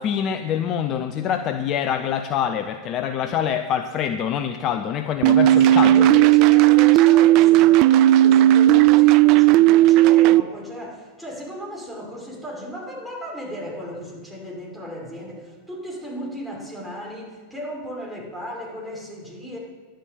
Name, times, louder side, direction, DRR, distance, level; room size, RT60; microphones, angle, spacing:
voice 1, 0.0-6.1, left 8 dB, 35° left, 8 dB, 0.7 m, -25 dB
sound 1, 5.2-10.4, right 14 dB, 45° right, 0.4 m, -14 dB
voice 2, 5.6-19.6, equal, ahead, -4 dB, 5.3 m, -35 dB
11.0 x 10.5 x 8.0 m, 1.4 s
figure-of-eight pair, 90°, 0 cm